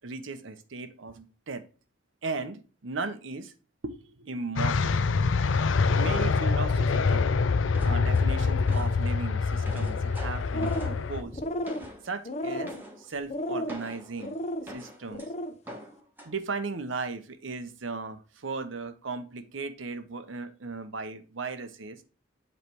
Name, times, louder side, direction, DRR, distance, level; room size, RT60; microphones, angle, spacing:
voice 1, 0.0-1.6 2.2-3.5 3.8-5.0 5.9-7.4 7.8-11.4 12.0-14.4 14.6-15.3 16.2-22.0, right 4 dB, 80° right, 10 dB, 0.8 m, -36 dB
sound 1, 4.6-11.2, left 4 dB, 80° left, 0.5 m, -25 dB
sound 2, 7.7-9.0 9.4-12.2 12.7-13.1 13.7-15.3 15.7-16.3, equal, 10° right, 1.1 m, -44 dB
sound 3, 10.3-11.0 11.3-11.9 12.2-12.8 13.3-13.8 14.2-14.6 15.1-15.5, left 1 dB, 35° left, 0.6 m, -33 dB
7.9 x 3.3 x 4.6 m, 0.36 s
head